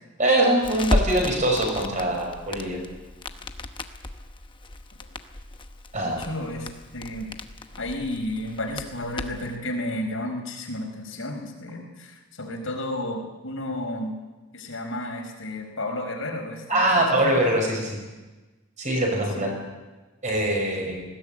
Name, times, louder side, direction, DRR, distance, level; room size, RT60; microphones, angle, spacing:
voice 1, 0.2-2.8 5.9-6.2 16.7-18.0 18.8-19.5 20.2-21.1, right 1 dB, 35° right, 1 dB, 6.0 m, -23 dB
Crackle, 0.6-9.6, left 1 dB, 20° left, 0.9 m, -34 dB
voice 2, 6.0-7.3 7.8-14.2 14.5-17.4 19.4-19.5, left 1 dB, 65° left, 2 dB, 4.6 m, -32 dB
20.0 x 16.5 x 8.6 m, 1.2 s
head